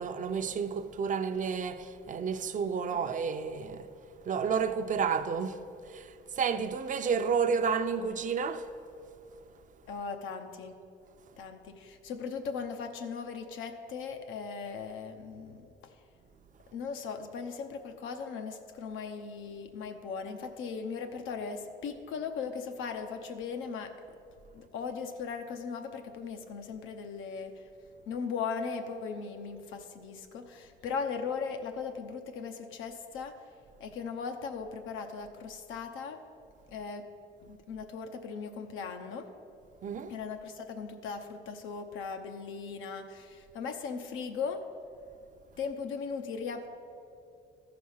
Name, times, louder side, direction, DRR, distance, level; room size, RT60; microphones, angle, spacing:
voice 1, 0.0-3.9 4.2-5.6 5.8-8.7 39.8-40.1, right 6 dB, 40° right, 0.5 m, -31 dB
voice 2, 9.9-10.8 11.4-15.9 16.7-23.9 24.5-27.6 28.1-33.3 33.8-36.2 36.7-37.1 37.4-39.3 40.1-44.6 45.6-46.7, left 5 dB, 90° left, 0.8 m, -38 dB
13.5 x 4.9 x 5.6 m
cardioid pair, 90°, 20 cm